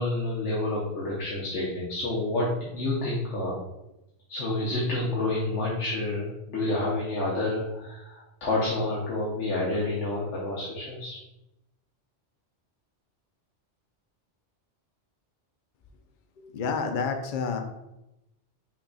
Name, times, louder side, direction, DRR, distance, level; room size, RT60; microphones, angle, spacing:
voice 1, 0.0-3.6 4.3-11.2, left 2 dB, 80° left, -6 dB, 1.3 m, -29 dB
voice 2, 16.4-17.6, left 5 dB, 55° left, 5 dB, 0.7 m, -29 dB
5.7 x 2.3 x 4.0 m, 0.90 s
omnidirectional pair, 1.2 m